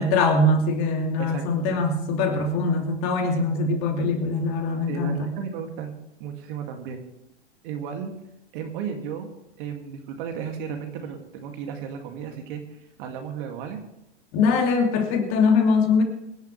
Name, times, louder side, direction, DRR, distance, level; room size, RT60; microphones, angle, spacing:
voice 1, 0.0-5.3 14.3-16.0, left 3 dB, 45° left, 3 dB, 2.8 m, -22 dB
voice 2, 1.2-1.8 4.9-7.0 7.6-8.1 8.5-9.3 9.6-13.8, right 7 dB, 50° right, 4 dB, 2.5 m, -34 dB
24.5 x 10.5 x 3.4 m, 0.82 s
figure-of-eight pair, 105°, 35 cm